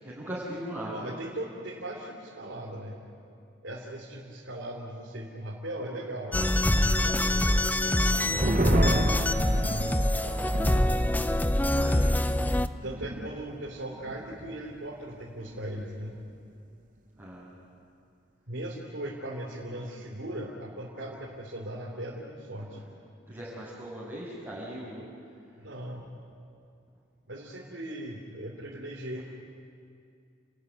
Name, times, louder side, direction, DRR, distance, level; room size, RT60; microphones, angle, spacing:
voice 1, 0.0-1.0 11.7-12.2 17.2-17.6 23.3-25.0, right 1 dB, 15° right, -11 dB, 6.6 m, -39 dB
voice 2, 0.9-3.0 3.6-6.4 7.0-8.4 9.1-10.8 12.8-16.2 18.5-22.8 25.6-26.1 27.3-29.2, right 1 dB, 85° right, -4 dB, 3.0 m, -39 dB
sound 1, 6.3-12.7, left 1 dB, 10° left, 0.5 m, -25 dB
sound 2, 7.8-14.7 15.0-15.1 15.5-16.0, right 2 dB, 45° right, 0.8 m, -34 dB
29.5 x 14.0 x 9.8 m, 2.4 s
head